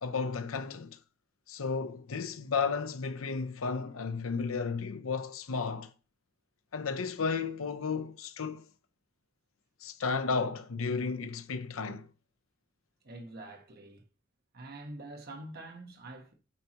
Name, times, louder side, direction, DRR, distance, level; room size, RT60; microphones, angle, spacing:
voice 1, 0.0-1.0 1.5-5.9 6.7-8.7 9.8-12.1, left 5 dB, 80° left, 0.7 m, -33 dB
voice 2, 13.0-14.0 14.5-16.3, right 2 dB, 50° right, 1.3 m, -45 dB
8.7 x 4.5 x 2.9 m
head